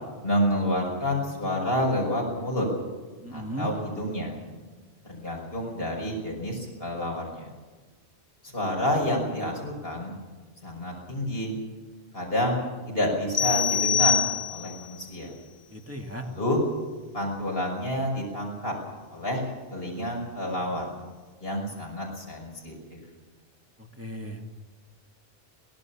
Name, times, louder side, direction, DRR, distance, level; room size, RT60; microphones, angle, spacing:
voice 1, 0.2-2.7 3.3-4.4 5.1-7.5 8.4-10.2 10.6-11.6 12.1-14.2 14.5-15.3 16.2-16.6 17.1-18.7 19.1-19.4 19.7-20.9 21.4-22.7, left 1 dB, 70° left, -1 dB, 6.1 m, -29 dB
voice 2, 3.2-3.7 15.7-16.3 23.8-24.5, right 1 dB, 15° right, 2 dB, 2.2 m, -36 dB
sound 1, 13.3-14.9, left 7 dB, 50° left, 1.1 m, -24 dB
23.5 x 18.0 x 7.2 m, 1.4 s
omnidirectional pair, 1.0 m